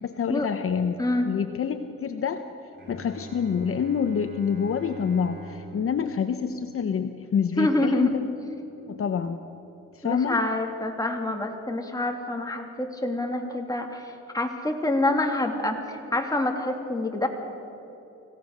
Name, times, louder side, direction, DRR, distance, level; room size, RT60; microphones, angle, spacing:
voice 1, 0.0-1.0 1.3-2.5 2.9-8.3 8.9-9.4 9.9-10.4, left 7 dB, 45° left, 8 dB, 1.0 m, -27 dB
Bowed string instrument, 2.7-8.5, right 4 dB, 35° right, 6.0 m, -45 dB
voice 2, 7.6-8.1 10.0-17.3, left 1 dB, 10° left, 2 dB, 2.9 m, -27 dB
25.5 x 16.5 x 6.8 m, 3.0 s
cardioid pair, 90°, 30 cm